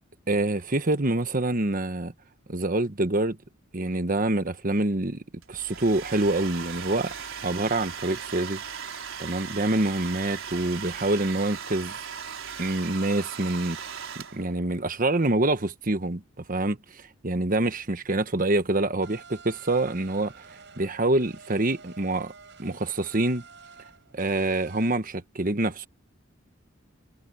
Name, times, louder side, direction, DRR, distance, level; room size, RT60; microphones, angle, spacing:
voice 1, 0.3-2.1 2.5-3.4 3.7-7.1 7.4-8.6 9.2-11.9 12.6-16.2 16.5-20.4 20.8-22.3 22.6-23.4 24.1-25.9, right 2 dB, 45° right, 1.2 m, -26 dB
Domestic sounds home sounds, 5.4-14.6, right 7 dB, 80° right, 4.7 m, -38 dB
sound 1, 19.0-25.0, right 5 dB, 60° right, 6.6 m, -50 dB
head